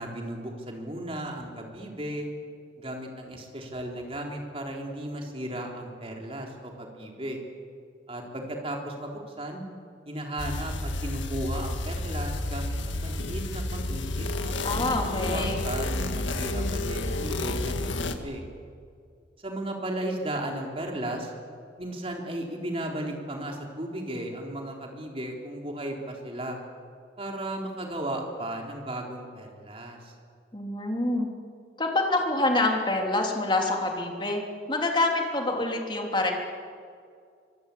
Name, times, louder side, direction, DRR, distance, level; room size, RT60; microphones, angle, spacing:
voice 1, 0.0-2.3 2.8-7.4 8.1-9.6 10.1-18.4 19.4-21.3 21.8-26.6 27.2-30.1, right 1 dB, 30° right, 1 dB, 3.8 m, -35 dB
sound 1, 10.4-18.1, left 2 dB, 90° left, 1.9 m, -30 dB
voice 2, 14.6-15.7 30.5-31.3 31.8-34.4 34.7-36.3, left 2 dB, 25° left, 1 dB, 3.4 m, -26 dB
25.0 x 22.5 x 8.6 m, 2.3 s
head